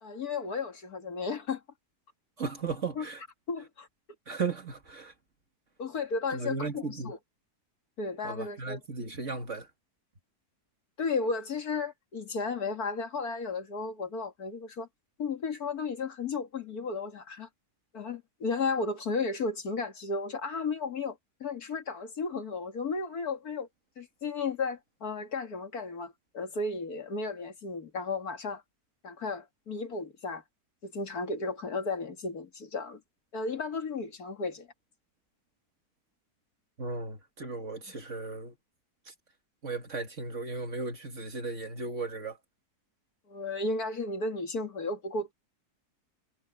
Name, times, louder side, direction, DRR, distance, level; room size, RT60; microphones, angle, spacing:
voice 1, 0.0-1.6 3.0-3.1 3.5-3.9 5.8-7.2 8.0-8.8 11.0-14.9 15.2-17.5 17.9-23.7 24.0-28.6 29.0-30.4 30.8-33.0 33.3-34.7 43.3-45.3, left 4 dB, 70° left, 2.5 m, -34 dB
voice 2, 2.4-3.2 4.3-5.1 6.3-7.1 8.2-9.7 36.8-38.6 39.1-39.2 39.6-42.4, right 4 dB, 50° right, 2.2 m, -36 dB
omnidirectional pair, 1.7 m